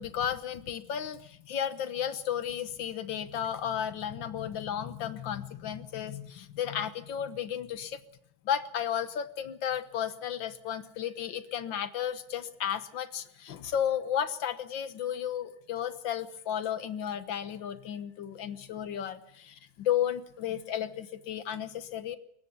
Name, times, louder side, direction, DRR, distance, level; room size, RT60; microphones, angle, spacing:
voice 1, 0.0-8.0 8.5-22.2, left 9 dB, 75° left, 12 dB, 1.9 m, -33 dB
22.0 x 18.0 x 7.0 m, 0.70 s
omnidirectional pair, 2.1 m